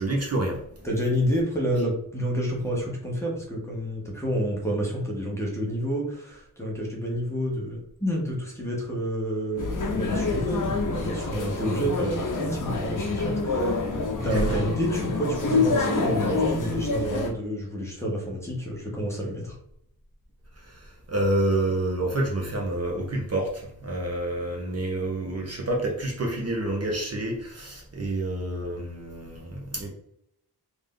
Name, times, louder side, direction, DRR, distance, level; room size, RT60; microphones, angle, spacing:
voice 1, 0.0-0.8 14.3-14.7 20.5-29.9, right 1 dB, 40° right, -1 dB, 0.8 m, -28 dB
voice 2, 0.8-13.9 14.2-19.6, equal, 5° left, -3 dB, 1.0 m, -29 dB
sound 1, 9.6-17.3, left 3 dB, 55° left, 0.9 m, -27 dB
3.3 x 2.7 x 3.7 m, 0.75 s
wide cardioid pair, 145°, 38 cm